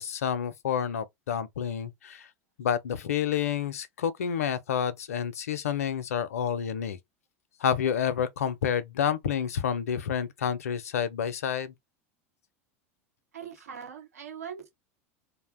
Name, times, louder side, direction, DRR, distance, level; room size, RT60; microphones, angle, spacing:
voice 1, 0.0-2.3 2.6-7.0 7.6-11.7, left 8 dB, 80° left, 0.5 m, -29 dB
voice 2, 13.3-14.7, right 7 dB, 85° right, 0.8 m, -41 dB
2.4 x 2.1 x 3.4 m
hypercardioid pair, 85°, 8 cm